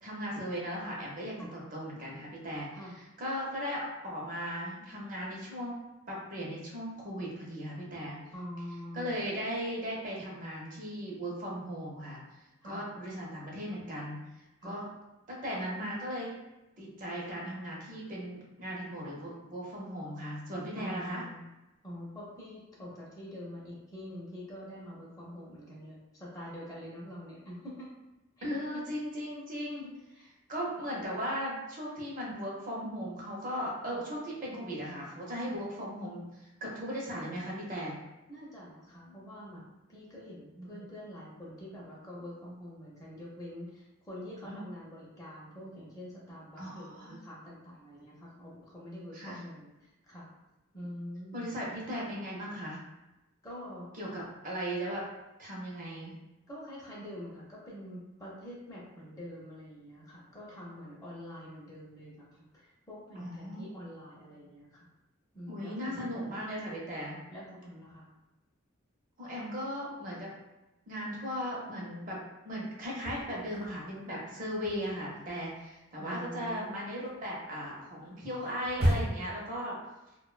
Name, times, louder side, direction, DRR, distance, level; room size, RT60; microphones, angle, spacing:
voice 1, 0.0-2.7 3.2-5.8 6.1-8.2 8.9-12.2 12.6-14.3 14.6-14.9 15.3-16.3 16.8-21.2 28.4-29.9 30.5-38.0 40.6-40.9 44.4-44.6 46.6-47.2 49.1-49.4 51.3-52.8 54.0-55.1 55.4-56.1 63.2-63.6 65.5-67.2 69.2-70.3 70.9-72.2 72.4-79.7, equal, 40° right, -4 dB, 0.5 m, -37 dB
voice 2, 8.3-9.2 12.6-12.8 14.6-14.8 20.7-21.4 21.8-27.9 28.4-28.5 28.7-28.8 29.8-30.3 33.9-34.0 35.5-35.6 38.3-39.6 39.9-50.3 50.7-51.5 53.4-54.1 56.5-64.8 65.3-66.3 67.3-68.1 76.0-76.8, equal, 15° left, -6 dB, 0.5 m, -45 dB
sound 1, 72.8-74.0 74.3-79.4, equal, 85° right, 0.7 m, -34 dB
2.4 x 2.1 x 2.4 m, 0.98 s
head